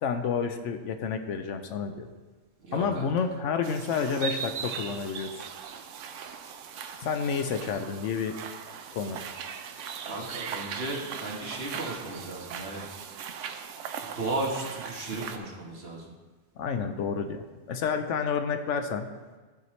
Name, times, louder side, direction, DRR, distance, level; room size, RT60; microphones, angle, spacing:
voice 1, 0.0-2.1 2.7-5.5 7.0-8.4 8.9-9.2 16.6-19.1, left 6 dB, 85° left, 7 dB, 1.0 m, -30 dB
voice 2, 2.6-3.1 10.0-12.9 14.0-16.1, right 2 dB, 60° right, -1 dB, 1.6 m, -35 dB
sound 1, 3.6-15.4, right 7 dB, 85° right, 1.0 m, -39 dB
14.0 x 5.0 x 3.1 m, 1.3 s
omnidirectional pair, 1.2 m